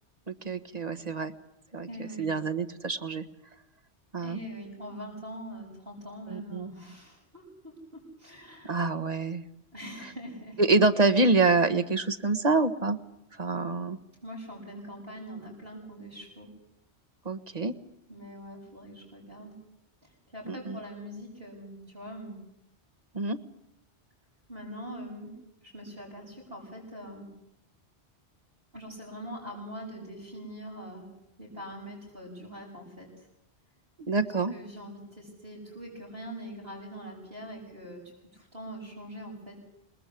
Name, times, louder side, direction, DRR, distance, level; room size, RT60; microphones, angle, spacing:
voice 1, 0.3-1.3 1.7-3.2 4.1-4.4 6.3-6.7 8.6-9.4 10.6-13.0 13.4-14.0 17.2-17.7 20.5-20.8 23.1-23.4 34.1-34.5, right 3 dB, 40° right, 8 dB, 1.5 m, -26 dB
voice 2, 1.9-2.3 4.2-8.7 9.7-10.6 14.2-16.5 18.1-19.5 20.3-22.4 24.5-25.3 25.6-27.3 28.7-31.1 31.4-33.3 34.5-38.0 38.3-39.6, equal, 55° right, -6 dB, 8.0 m, -43 dB
27.0 x 20.0 x 8.5 m, 0.82 s
omnidirectional pair, 1.1 m